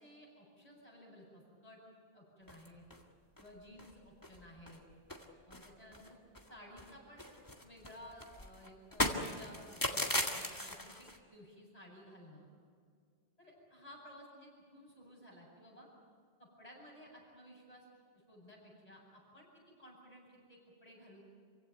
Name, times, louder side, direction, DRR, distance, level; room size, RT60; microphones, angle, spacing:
voice 1, 0.0-1.8 2.1-2.8 3.4-4.8 5.5-6.2 6.5-7.2 7.6-12.5 13.4-15.9 16.4-17.8 18.3-19.5 19.8-21.2, equal, 35° left, -3 dB, 8.0 m, -56 dB
sound 1, 2.5-3.0 3.4-3.5 3.8-3.9 4.2-4.8 5.1-6.5 6.8-11.2, left 1 dB, 20° left, 1.9 m, -38 dB
27.5 x 16.5 x 9.4 m, 2.1 s
omnidirectional pair, 1.1 m